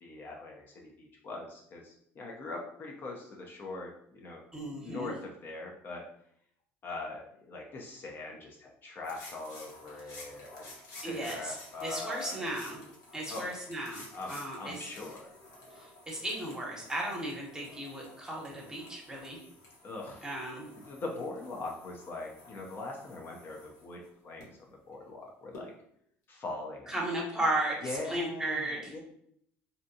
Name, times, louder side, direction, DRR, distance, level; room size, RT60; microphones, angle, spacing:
voice 1, 0.0-4.4 4.8-6.0 6.8-12.5 13.3-13.5 14.1-15.3 19.8-25.7 26.3-26.9 27.8-29.0, left 2 dB, 40° left, 0 dB, 0.5 m, -42 dB
voice 2, 4.5-5.1 11.0-11.5 11.8-12.8 13.1-14.9 15.8-19.4 20.2-20.7 26.9-28.9, right 1 dB, 10° right, -2 dB, 0.9 m, -35 dB
sound 1, 9.0-24.4 25.5-25.6, left 2 dB, 70° left, 0.9 m, -52 dB
2.6 x 2.2 x 2.6 m, 0.69 s
cardioid pair, 115°, 5 cm